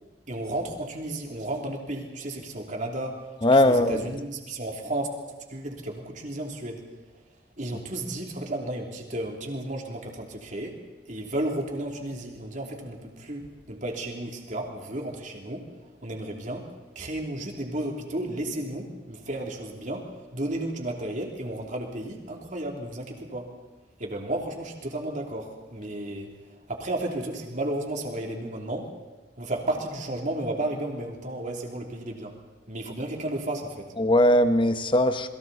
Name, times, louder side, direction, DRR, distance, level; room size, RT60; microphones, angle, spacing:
voice 1, 0.3-5.1 5.5-6.8 7.6-10.8 11.0-15.7 16.0-23.5 24.0-28.9 29.4-32.3 32.7-33.9, right 1 dB, 45° right, 1 dB, 3.1 m, -33 dB
voice 2, 3.4-4.0 34.0-35.3, left 1 dB, 25° left, 9 dB, 1.1 m, -20 dB
28.5 x 22.0 x 4.2 m, 1.2 s
head